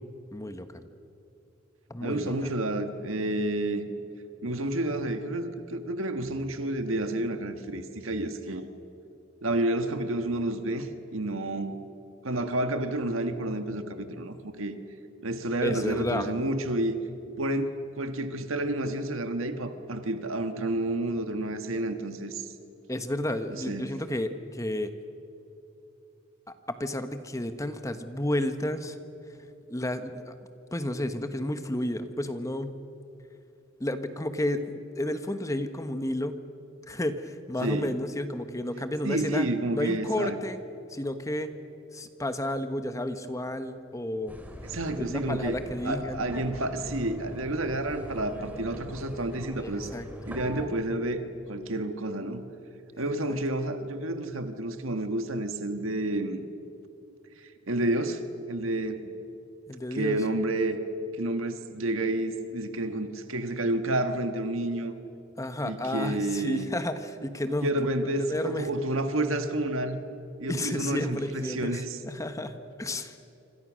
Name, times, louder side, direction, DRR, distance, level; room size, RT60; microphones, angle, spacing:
voice 1, 0.3-0.7 1.9-2.3 15.6-16.3 22.9-24.9 26.5-29.0 29.7-30.3 30.7-32.7 33.8-36.4 36.9-40.6 40.9-41.5 41.9-44.4 45.0-46.2 49.6-50.1 52.9-53.0 53.3-53.4 59.7-60.2 65.4-67.7 68.3-68.7 70.5-73.2, left 1 dB, 15° left, 9 dB, 1.1 m, -32 dB
voice 2, 2.0-3.9 4.4-8.7 9.4-11.7 12.2-14.8 15.2-17.0 17.4-22.5 23.5-24.0 37.6-37.9 39.0-40.4 44.6-45.6 45.8-49.9 50.3-52.4 53.0-56.4 57.4-58.2 58.5-59.1 59.9-60.8 61.1-64.9 65.6-66.7 67.6-70.0 70.4-72.0, right 1 dB, 80° right, 8 dB, 1.6 m, -30 dB
sound 1, 44.3-50.7, equal, 10° right, 2.6 m, -42 dB
26.5 x 26.5 x 6.3 m, 2.9 s
head